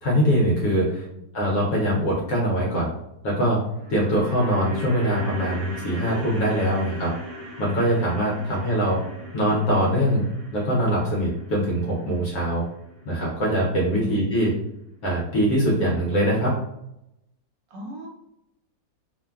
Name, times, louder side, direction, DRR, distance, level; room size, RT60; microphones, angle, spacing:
voice 1, 0.0-1.0 1.3-2.9 3.2-3.6 3.9-7.1 7.6-9.0 9.3-10.3 10.5-12.6 13.0-14.5 15.0-16.5, equal, 65° left, -4 dB, 1.0 m, -22 dB
sound 1, 3.6-13.8 14.1-14.2, equal, 50° right, 1.1 m, -39 dB
voice 2, 14.0-14.5 17.7-18.1, left 1 dB, 75° right, -2 dB, 1.3 m, -35 dB
3.0 x 2.1 x 2.3 m, 0.83 s
omnidirectional pair, 2.0 m